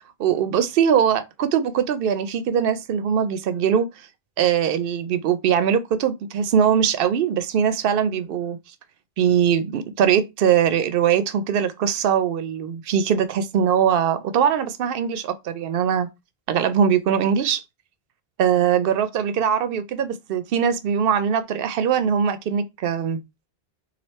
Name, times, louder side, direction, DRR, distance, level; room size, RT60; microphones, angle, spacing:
voice 1, 0.2-3.9 4.4-8.6 9.2-16.1 16.5-17.6 18.4-23.2, right 8 dB, 65° right, 0.7 m, -21 dB
3.3 x 2.7 x 4.1 m
omnidirectional pair, 1.1 m